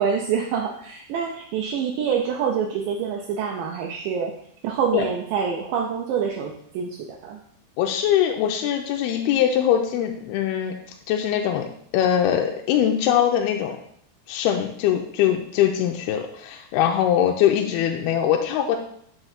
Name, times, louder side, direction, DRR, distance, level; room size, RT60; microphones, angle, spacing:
voice 1, 0.0-4.3 4.6-7.4, right 7 dB, 90° right, 1 dB, 1.9 m, -26 dB
voice 2, 7.8-10.8 11.1-11.7 11.9-13.8 14.3-18.8, left 10 dB, 80° left, 2 dB, 2.3 m, -22 dB
7.6 x 2.7 x 5.7 m, 0.66 s
omnidirectional pair, 4.6 m